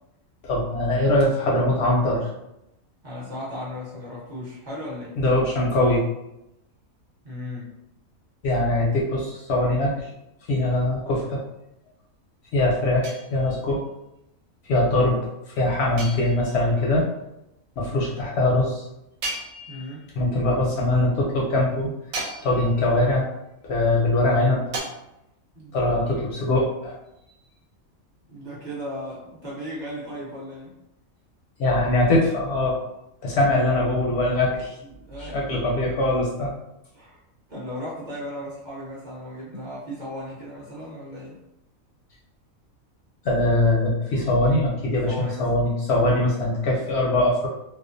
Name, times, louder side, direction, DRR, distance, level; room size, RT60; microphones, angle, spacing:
voice 1, 0.4-2.3 5.2-6.0 8.4-9.9 10.5-11.4 12.5-13.8 14.7-15.2 15.6-17.0 17.8-18.8 20.2-21.9 22.4-23.3 23.6-24.6 25.7-26.9 31.6-32.8 33.2-34.7 35.3-36.5 43.2-47.5, left 1 dB, 65° left, -3 dB, 0.7 m, -22 dB
voice 2, 3.0-5.2 7.2-7.7 19.7-20.0 25.5-25.9 28.3-30.7 34.8-35.4 36.9-37.2 37.5-41.4 45.0-45.5, left 1 dB, 40° right, -7 dB, 0.7 m, -36 dB
sound 1, 13.0-13.8 16.0-16.8 19.2-20.1 22.1-22.9 24.7-24.8, right 2 dB, 80° right, 1.0 m, -35 dB
2.4 x 2.2 x 2.5 m, 0.86 s
omnidirectional pair, 1.4 m